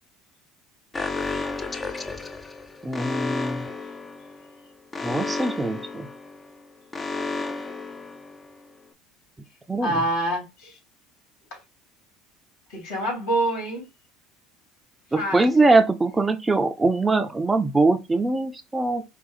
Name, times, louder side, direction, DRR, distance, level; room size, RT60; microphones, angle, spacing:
Alarm, 0.9-8.7, left 3 dB, 25° left, 0.7 m, -33 dB
voice 1, 2.8-3.7 5.0-6.1 9.7-10.0 15.1-19.0, right 3 dB, 15° right, 0.6 m, -22 dB
voice 2, 9.8-10.8 11.5-11.6 12.7-13.8 15.2-15.4, right 1 dB, 70° left, 3.0 m, -26 dB
4.8 x 2.4 x 3.9 m
hypercardioid pair, 75°, 0 cm